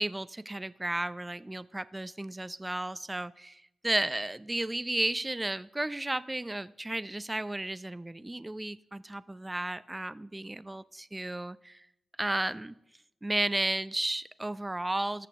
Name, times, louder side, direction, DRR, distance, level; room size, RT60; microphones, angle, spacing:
voice 1, 0.0-3.6 3.8-11.9 12.2-12.7 13.2-15.3, right 1 dB, 20° right, 16 dB, 0.5 m, -33 dB
19.5 x 6.6 x 3.7 m, 0.85 s
supercardioid pair, 50°, 0 cm